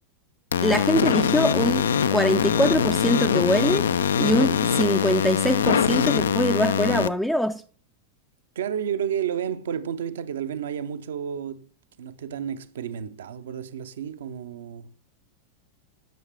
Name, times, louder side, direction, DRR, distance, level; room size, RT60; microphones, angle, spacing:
sound 1, 0.5-7.1, left 7 dB, 65° left, 0.4 m, -23 dB
voice 1, 0.6-1.9 2.1-7.6, equal, ahead, 0.4 m, -23 dB
voice 2, 8.6-11.7 12.0-15.1, right 8 dB, 60° right, 0.6 m, -31 dB
10.5 x 6.4 x 3.5 m
figure-of-eight pair, 90°, 0 cm